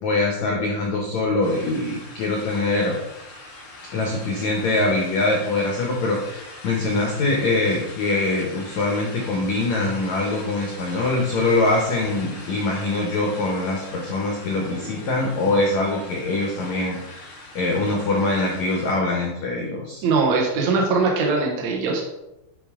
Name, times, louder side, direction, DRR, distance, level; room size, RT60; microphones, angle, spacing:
voice 1, 0.0-3.0 3.9-20.0, left 2 dB, 80° left, -1 dB, 1.6 m, -23 dB
sound 1, 1.4-19.0, left 2 dB, 60° left, 3.9 m, -41 dB
voice 2, 20.0-22.0, right 4 dB, 80° right, 0 dB, 1.6 m, -21 dB
11.0 x 5.0 x 3.7 m, 0.91 s
omnidirectional pair, 5.0 m